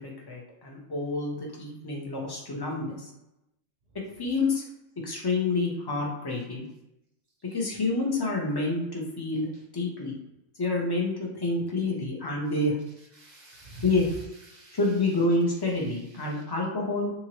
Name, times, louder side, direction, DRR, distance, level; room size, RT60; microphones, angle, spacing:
voice 1, 0.0-3.1 4.2-4.6 5.0-6.6 7.5-9.5 9.7-10.2 10.6-12.8 13.8-14.1 14.7-17.1, left 2 dB, 35° left, -2 dB, 0.4 m, -28 dB
voice 2, 13.0-14.8 15.8-16.4, right 2 dB, 50° right, -2 dB, 0.5 m, -46 dB
2.8 x 2.6 x 2.9 m, 0.89 s
omnidirectional pair, 1.4 m